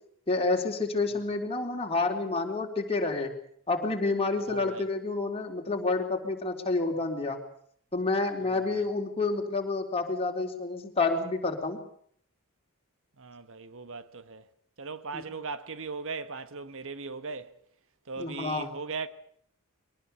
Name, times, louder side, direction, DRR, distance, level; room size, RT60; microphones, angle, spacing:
voice 1, 0.3-3.3 3.7-7.4 7.9-11.8 15.1-15.3 18.2-18.7, left 3 dB, 25° left, 4.0 m, -29 dB
voice 2, 4.5-4.8 8.4-8.9 13.2-14.5 14.8-17.6 18.1-19.1, right 4 dB, 65° right, 1.4 m, -38 dB
23.0 x 19.0 x 8.4 m
head